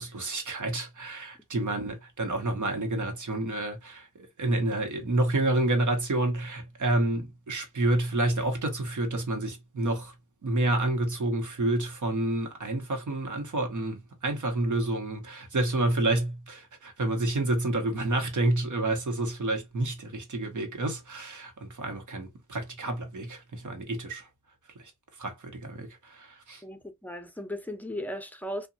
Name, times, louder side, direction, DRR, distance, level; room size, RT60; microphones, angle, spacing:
voice 1, 0.0-10.1 10.4-24.3 25.2-26.6, right 2 dB, 70° right, 0.9 m, -29 dB
voice 2, 26.6-28.7, left 1 dB, 5° left, 0.6 m, -37 dB
2.8 x 2.2 x 2.5 m
wide cardioid pair, 65°, 31 cm